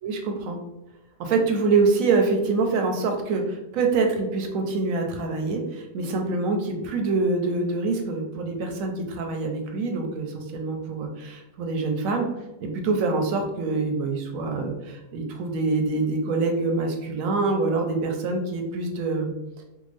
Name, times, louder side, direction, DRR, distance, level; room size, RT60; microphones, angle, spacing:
voice 1, 0.0-0.6 1.2-12.3 12.6-19.3, right 3 dB, 70° right, 3 dB, 0.9 m, -25 dB
3.5 x 2.2 x 3.2 m, 0.95 s
omnidirectional pair, 1.6 m